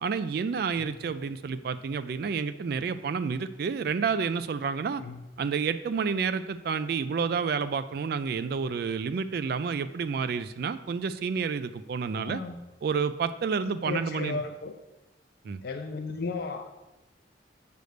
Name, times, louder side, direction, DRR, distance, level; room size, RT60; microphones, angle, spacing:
voice 1, 0.0-5.0 5.4-12.4 12.8-14.4 15.4-15.6, right 5 dB, 55° right, 12 dB, 0.3 m, -29 dB
voice 2, 12.1-12.6 13.6-14.7 15.6-16.7, left 4 dB, 55° left, 5 dB, 0.5 m, -35 dB
7.7 x 3.4 x 6.3 m, 1.0 s
head